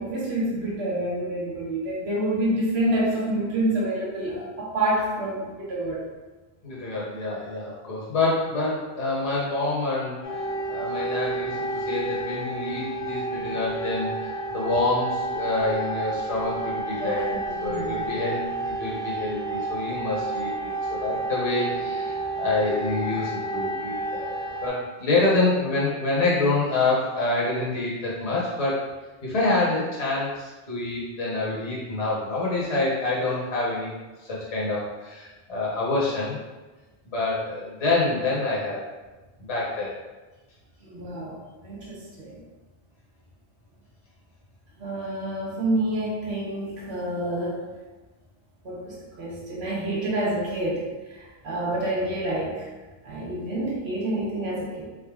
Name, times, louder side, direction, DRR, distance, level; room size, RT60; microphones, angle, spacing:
voice 1, 0.0-6.0 17.0-18.1 40.8-42.4 44.8-47.6 48.6-50.8 51.1-52.7 53.0-54.8, right 1 dB, 75° right, -5 dB, 1.2 m, -28 dB
voice 2, 6.6-10.1 10.7-17.3 17.6-24.3 24.6-28.8 29.2-33.9 34.3-36.4 37.1-38.8 39.4-40.0, left 2 dB, 35° left, -6 dB, 0.9 m, -27 dB
sound 1, 10.2-24.7, right 2 dB, 80° left, 1.2 m, -30 dB
4.0 x 3.6 x 2.3 m, 1.2 s
omnidirectional pair, 1.1 m